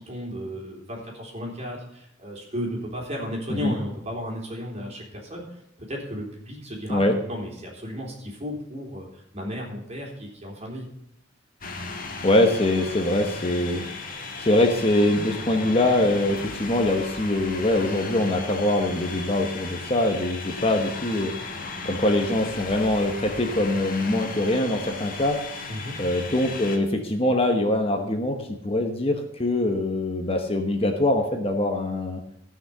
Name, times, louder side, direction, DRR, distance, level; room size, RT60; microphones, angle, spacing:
voice 1, 0.0-5.6 5.9-7.0 7.3-10.9 25.7-26.0, equal, 35° right, -1 dB, 3.8 m, -34 dB
sound 1, 11.6-26.8, left 3 dB, 50° left, 1.7 m, -36 dB
voice 2, 12.2-21.3 21.8-25.4 26.0-32.2, left 1 dB, 30° left, 4 dB, 1.2 m, -23 dB
14.5 x 6.1 x 6.8 m, 0.75 s
head